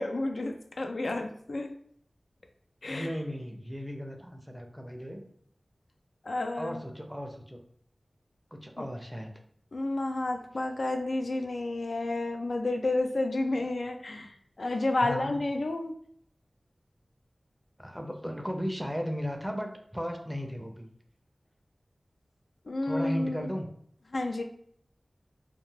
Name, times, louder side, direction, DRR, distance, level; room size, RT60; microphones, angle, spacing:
voice 1, 0.0-1.7 2.8-3.1 6.3-6.8 8.8-8.9 9.7-15.9 22.7-23.5 24.1-24.4, left 2 dB, 80° left, 5 dB, 0.3 m, -31 dB
voice 2, 2.9-5.2 6.6-7.6 8.5-9.3 13.5-13.7 15.0-15.4 17.8-20.9 22.8-23.7, equal, 5° right, 3 dB, 0.4 m, -36 dB
2.4 x 2.3 x 3.1 m, 0.64 s
wide cardioid pair, 65°, 0 cm